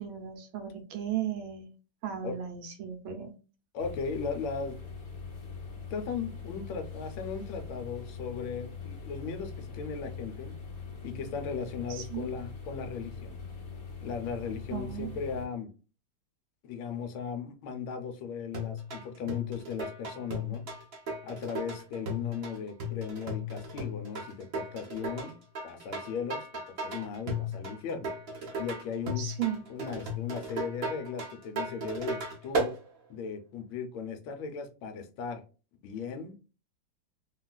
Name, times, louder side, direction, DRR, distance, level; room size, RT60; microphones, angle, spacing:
voice 1, 0.0-1.7 2.0-3.3 11.9-12.3 14.7-15.1 29.2-29.6, right 10 dB, 90° right, 1.5 m, -35 dB
voice 2, 3.7-4.8 5.9-10.5 11.0-13.4 14.0-15.7 16.6-20.6 21.2-25.3 25.6-26.5 26.8-28.1 28.6-29.2 29.7-32.7 33.1-35.4 35.8-36.3, left 6 dB, 80° left, 1.4 m, -37 dB
sound 1, 3.8-15.4, left 5 dB, 55° left, 1.1 m, -42 dB
sound 2, 18.5-32.7, equal, 60° right, 0.6 m, -35 dB
3.6 x 2.3 x 2.2 m
omnidirectional pair, 2.2 m